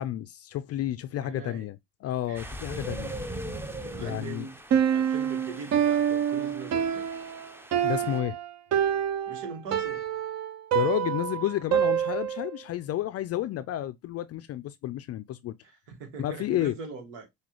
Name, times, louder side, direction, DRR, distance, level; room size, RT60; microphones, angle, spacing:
voice 1, 0.0-3.1 4.0-4.5 7.8-8.4 10.7-15.5 16.2-16.7, left 13 dB, 40° left, 0.4 m, -31 dB
voice 2, 1.1-1.7 2.3-2.5 3.8-4.6 4.9-7.1 9.3-10.0 15.6-17.3, right 4 dB, 75° right, 1.6 m, -41 dB
sound 1, 2.3-8.2, right 1 dB, 5° right, 0.6 m, -40 dB
Piano, 4.7-12.6, right 9 dB, 45° right, 0.7 m, -27 dB
5.9 x 2.8 x 3.0 m
hypercardioid pair, 75°, 38 cm